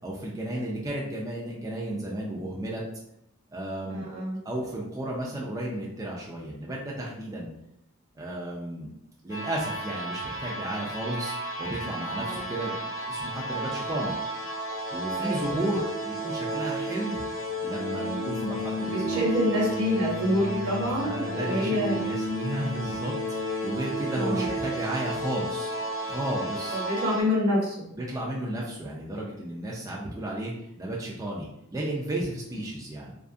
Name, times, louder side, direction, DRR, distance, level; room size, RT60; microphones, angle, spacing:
voice 1, 0.0-2.8 3.5-4.1 4.4-7.5 8.2-8.9 9.2-14.2 14.9-17.2 17.6-19.2 21.0-23.2 23.6-25.7 26.1-26.8 27.9-33.1, right 1 dB, 15° right, -3 dB, 0.3 m, -33 dB
voice 2, 3.9-4.4 12.2-12.4 15.2-15.6 18.9-22.0 24.1-24.5 26.7-27.9, left 1 dB, 75° right, -3 dB, 0.9 m, -27 dB
sound 1, 9.3-27.2, equal, 60° left, 0.6 m, -32 dB
2.5 x 2.3 x 2.5 m, 0.78 s
head